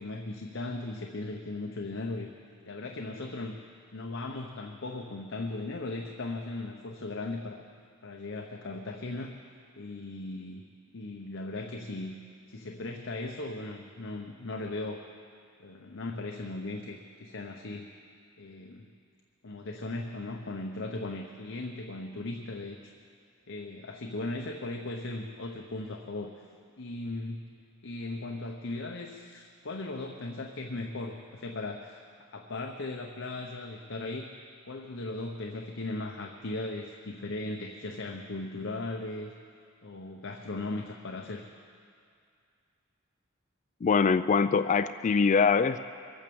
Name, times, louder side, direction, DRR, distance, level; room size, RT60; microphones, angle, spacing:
voice 1, 0.0-2.3 2.7-3.6 3.9-7.6 8.0-9.4 9.8-10.6 10.9-12.2 12.5-15.1 15.6-17.9 18.4-18.9 19.4-22.9 23.5-26.5 26.8-32.0 32.3-39.3 39.8-41.5, left 2 dB, 65° left, 2 dB, 0.9 m, -37 dB
voice 2, 43.8-45.8, left 5 dB, 35° left, 10 dB, 0.3 m, -23 dB
23.0 x 8.9 x 7.0 m, 2.3 s
head